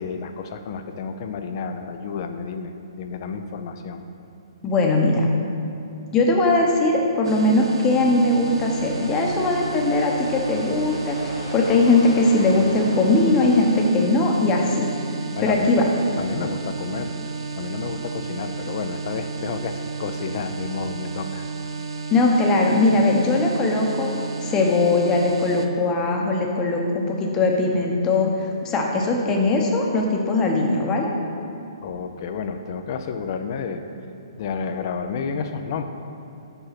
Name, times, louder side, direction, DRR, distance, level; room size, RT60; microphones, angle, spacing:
voice 1, 0.0-4.0 15.4-15.7 16.2-17.1 17.6-21.5 31.8-33.8 34.4-35.8, left 5 dB, 50° left, 7 dB, 0.6 m, -30 dB
voice 2, 4.6-5.3 6.1-14.9 15.4-15.9 22.1-24.1 24.4-31.1, left 2 dB, 20° left, 0 dB, 1.0 m, -20 dB
sound 1, 7.2-25.7, right 4 dB, 70° right, 0.7 m, -32 dB
sound 2, 8.5-13.9, left 1 dB, 70° left, 1.6 m, -37 dB
5.7 x 5.4 x 5.8 m, 2.8 s
hypercardioid pair, 135°, 3 cm